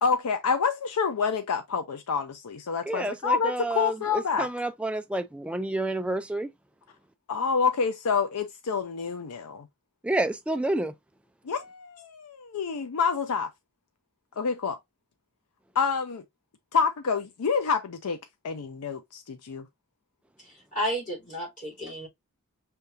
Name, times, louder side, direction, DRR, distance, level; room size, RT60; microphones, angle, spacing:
voice 1, 0.0-4.5 7.3-9.7 11.4-13.5 14.4-14.8 15.8-16.2 16.7-18.2 18.4-19.7, left 5 dB, 85° left, 0.5 m, -27 dB
voice 2, 2.9-6.5 10.0-10.9, right 1 dB, 5° right, 0.3 m, -29 dB
voice 3, 20.7-22.1, equal, 35° left, 3.6 m, -31 dB
5.6 x 3.5 x 2.6 m
head